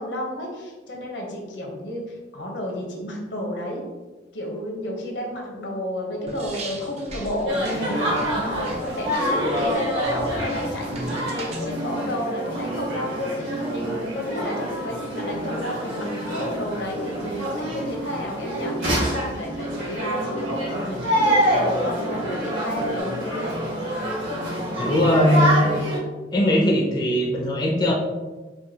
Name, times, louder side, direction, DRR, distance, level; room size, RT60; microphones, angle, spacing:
voice 1, 0.0-3.8 4.3-23.6, left 1 dB, 80° left, -1 dB, 0.9 m, -31 dB
sound 1, 6.3-11.7, right 1 dB, 35° right, 0.5 m, -37 dB
sound 2, 7.5-26.0, equal, 80° right, 1.4 m, -27 dB
sound 3, 8.9-9.0 10.8-23.0, right 2 dB, 60° right, 1.0 m, -36 dB
voice 2, 24.8-25.8 26.3-27.9, left 1 dB, 25° left, -2 dB, 0.4 m, -20 dB
4.7 x 2.2 x 2.8 m, 1.2 s
head